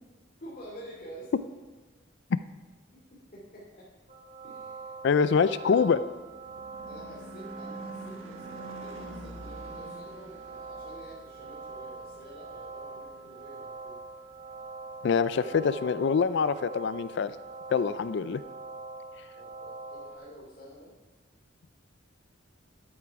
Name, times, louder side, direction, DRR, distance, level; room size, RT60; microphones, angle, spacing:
voice 1, 0.4-1.5 3.1-3.9 4.4-5.9 6.8-14.0 19.3-20.9, equal, 45° left, -7 dB, 2.7 m, -48 dB
sound 1, 4.1-20.2, right 3 dB, 35° right, 3.2 m, -44 dB
voice 2, 5.0-6.0 15.0-17.3 17.7-18.4, left 6 dB, 60° left, 14 dB, 0.4 m, -25 dB
Car passing by / Truck / Engine, 6.0-14.1, right 1 dB, 75° right, 1.5 m, -47 dB
12.0 x 8.8 x 4.7 m, 1.3 s
head